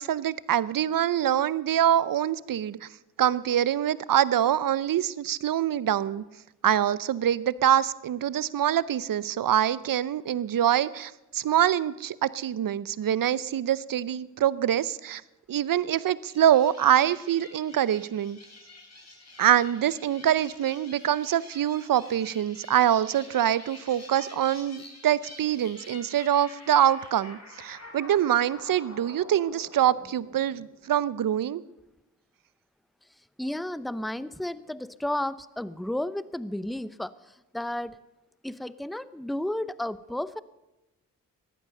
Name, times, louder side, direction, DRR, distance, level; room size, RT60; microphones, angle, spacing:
voice 1, 0.0-2.8 3.2-6.2 6.6-15.2 15.5-18.4 19.4-31.6, right 10 dB, 65° right, 18 dB, 0.7 m, -25 dB
sound 1, 16.2-30.9, left 2 dB, 45° left, 5.4 m, -48 dB
voice 2, 33.4-38.0 38.4-40.4, left 1 dB, ahead, 17 dB, 0.6 m, -33 dB
14.5 x 11.5 x 6.5 m, 0.98 s
supercardioid pair, 45°, 37 cm